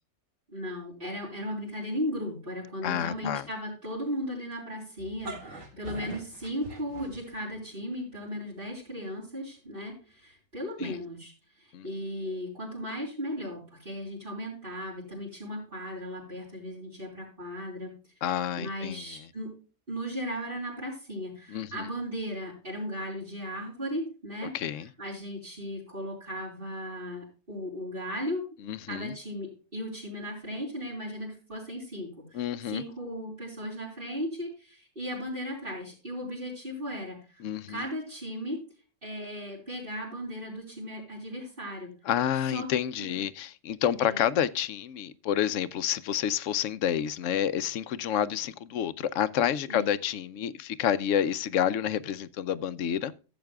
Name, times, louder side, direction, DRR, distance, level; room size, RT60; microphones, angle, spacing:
voice 1, 0.5-11.3 11.6-17.9 18.6-19.5 19.9-24.5 25.0-28.5 28.9-37.4 37.7-38.6 39.0-41.9 42.5-42.7 43.0-43.2 44.0-44.2 49.7-49.8, equal, 45° right, 4.1 m, -36 dB
voice 2, 2.8-3.5 10.8-11.0 11.7-11.9 18.2-19.0 21.5-21.9 24.5-24.9 28.6-29.1 32.3-32.8 37.4-37.8 42.0-53.1, left 9 dB, 85° left, 1.0 m, -29 dB
sound 1, 5.0-7.6, right 2 dB, 70° right, 2.5 m, -42 dB
15.5 x 8.1 x 2.3 m
omnidirectional pair, 1.2 m